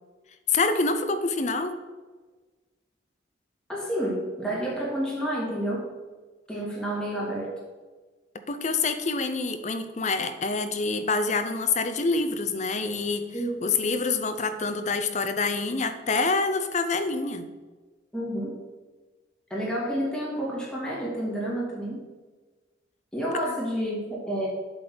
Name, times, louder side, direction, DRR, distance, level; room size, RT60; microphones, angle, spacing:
voice 1, 0.5-1.8 8.5-13.3 13.6-17.5 23.5-23.6, left 3 dB, 40° left, 9 dB, 0.6 m, -26 dB
voice 2, 3.7-5.9 6.5-7.5 13.3-13.5 18.1-18.5 19.5-22.0 23.1-24.5, equal, 5° left, -6 dB, 2.1 m, -29 dB
8.0 x 3.9 x 6.2 m, 1.3 s
head